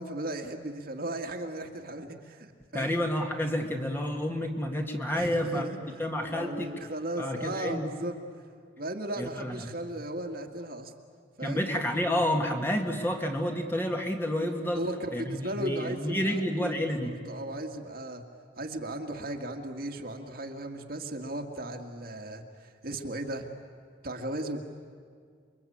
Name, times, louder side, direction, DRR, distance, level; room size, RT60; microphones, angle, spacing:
voice 1, 0.0-2.9 5.1-6.0 6.3-8.2 8.8-10.9 11.4-11.7 14.7-16.9 17.3-18.2 18.6-23.5 24.0-24.6, right 1 dB, 55° right, 3 dB, 1.9 m, -36 dB
voice 2, 2.7-5.7 6.0-6.7 7.2-8.1 9.2-9.7 11.4-14.8 15.1-17.2, left 1 dB, 10° left, 3 dB, 2.0 m, -30 dB
28.5 x 23.5 x 8.7 m, 2.1 s
head